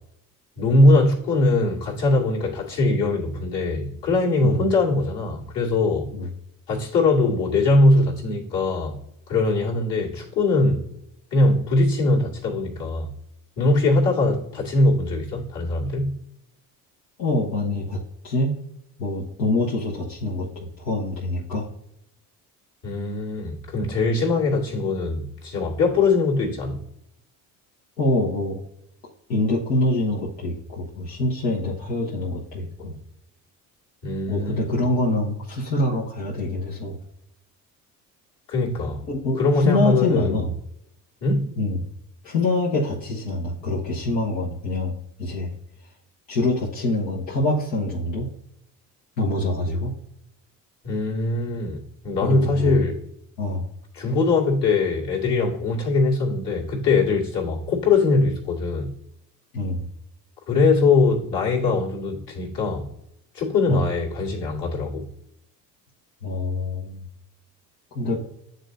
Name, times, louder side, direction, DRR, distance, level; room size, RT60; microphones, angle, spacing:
voice 1, 0.6-6.1 6.7-9.0 9.3-10.9 11.3-13.1 13.6-16.2 22.8-26.8 34.0-34.6 38.5-39.0 39.4-40.3 41.2-41.6 50.8-53.0 53.9-58.9 60.5-62.9 63.3-65.1, left 2 dB, 55° left, -5 dB, 2.3 m, -21 dB
voice 2, 17.2-18.0 18.2-18.6 19.0-21.7 28.0-28.6 29.3-33.0 34.3-37.0 39.1-40.5 41.6-41.8 42.2-44.9 45.2-45.5 46.3-48.3 49.2-49.9 52.2-52.8 53.4-53.7 59.5-59.9 63.7-63.8 66.2-67.0 67.9-68.2, left 2 dB, 80° left, -6 dB, 1.3 m, -25 dB
9.4 x 3.9 x 2.6 m, 0.77 s
hypercardioid pair, 55°, 49 cm